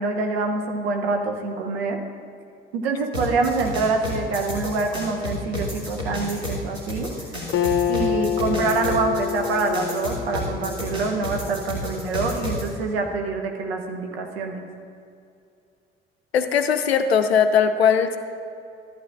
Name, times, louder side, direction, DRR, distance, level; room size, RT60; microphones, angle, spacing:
voice 1, 0.0-2.0 2.7-7.1 7.9-14.7, right 3 dB, 75° right, 3 dB, 0.9 m, -25 dB
sound 1, 3.1-12.6, left 1 dB, 90° right, 1.8 m, -30 dB
Acoustic guitar, 7.5-11.1, left 10 dB, 40° left, 0.7 m, -26 dB
voice 2, 16.3-18.2, left 7 dB, 85° left, 9 dB, 0.5 m, -19 dB
14.5 x 8.8 x 2.5 m, 2.5 s
figure-of-eight pair, 45°, 31 cm